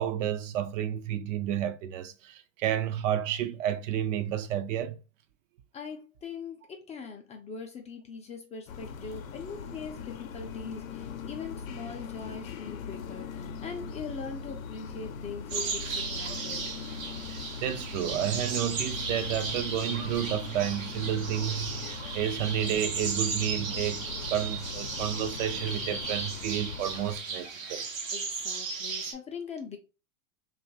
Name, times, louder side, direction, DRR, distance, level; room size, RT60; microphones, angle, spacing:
voice 1, 0.0-5.0 17.3-27.8, right 10 dB, 70° right, 0.6 m, -31 dB
voice 2, 5.7-16.7 28.1-29.8, left 5 dB, 20° left, 0.3 m, -41 dB
sound 1, 8.7-27.2, left 6 dB, 90° left, 0.5 m, -40 dB
sound 2, 15.5-29.1, right 5 dB, 85° right, 0.9 m, -35 dB
2.7 x 2.3 x 2.6 m
hypercardioid pair, 100°, 39 cm